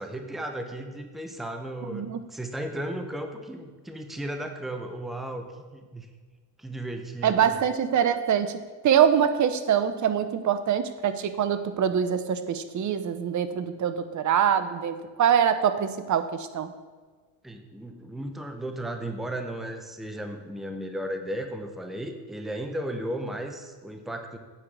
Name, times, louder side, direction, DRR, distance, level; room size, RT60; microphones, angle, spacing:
voice 1, 0.0-5.5 5.7-6.1 6.6-7.5 17.4-24.4, right 1 dB, ahead, 5 dB, 0.8 m, -35 dB
voice 2, 7.2-16.7, right 8 dB, 35° right, 11 dB, 0.8 m, -24 dB
8.5 x 4.8 x 7.1 m, 1.4 s
supercardioid pair, 95°, 49 cm